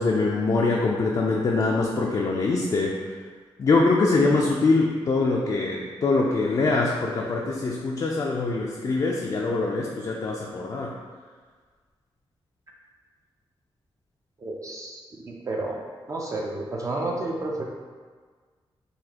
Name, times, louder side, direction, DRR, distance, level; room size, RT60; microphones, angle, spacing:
voice 1, 0.0-3.2 3.6-11.0, left 3 dB, 45° left, -2 dB, 0.4 m, -23 dB
voice 2, 14.4-15.8 16.1-17.6, right 2 dB, 35° right, -2 dB, 0.5 m, -31 dB
4.0 x 2.6 x 2.9 m, 1.5 s
cardioid pair, 85°, 9 cm